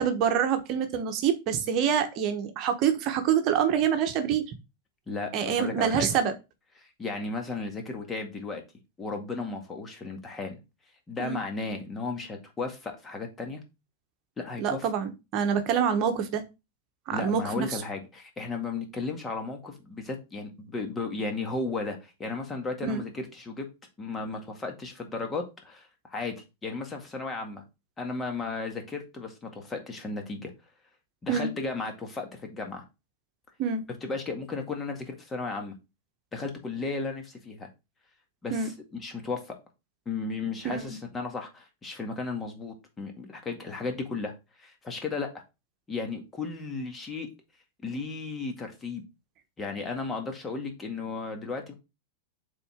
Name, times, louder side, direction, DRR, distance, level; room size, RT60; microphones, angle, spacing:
voice 1, 0.0-4.5 5.3-6.3 11.2-11.4 14.6-16.4 17.1-17.8 22.8-23.0 31.3-31.5 33.6-33.8 38.5-38.7 40.6-41.0, right 7 dB, 45° right, 7 dB, 1.1 m, -26 dB
voice 2, 5.1-6.1 6.8-8.6 9.0-10.6 11.1-13.6 14.4-14.9 17.1-23.7 24.0-27.6 28.0-30.5 31.2-32.8 33.9-35.8 36.3-37.7 38.4-38.7 39.0-39.6 40.1-44.3 44.6-45.4 45.9-47.3 47.8-49.0 49.6-51.7, left 3 dB, 20° left, 3 dB, 1.9 m, -34 dB
6.7 x 3.9 x 3.7 m, 0.26 s
hypercardioid pair, 100°, 0 cm